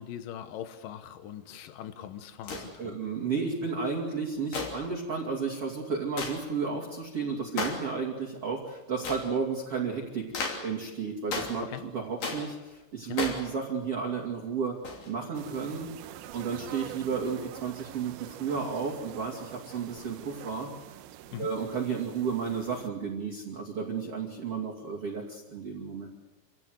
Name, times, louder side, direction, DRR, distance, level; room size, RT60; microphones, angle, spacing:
voice 1, 0.0-3.0 11.6-11.8 13.1-13.2 21.3-21.5, left 10 dB, 85° left, 11 dB, 1.9 m, -41 dB
sound 1, 2.4-2.7 4.5-4.9 6.2-6.4 7.6-7.9 9.0-9.3 10.3-10.7 11.3-11.6 12.2-12.5 13.1-13.5 14.8-15.1, left 3 dB, 45° left, 4.2 m, -34 dB
voice 2, 2.8-15.9 16.3-20.7 21.4-26.1, right 5 dB, 35° right, -1 dB, 2.8 m, -33 dB
sound 2, 15.3-22.9, right 12 dB, 75° right, 2.9 m, -45 dB
26.5 x 17.0 x 8.1 m, 1.1 s
omnidirectional pair, 5.8 m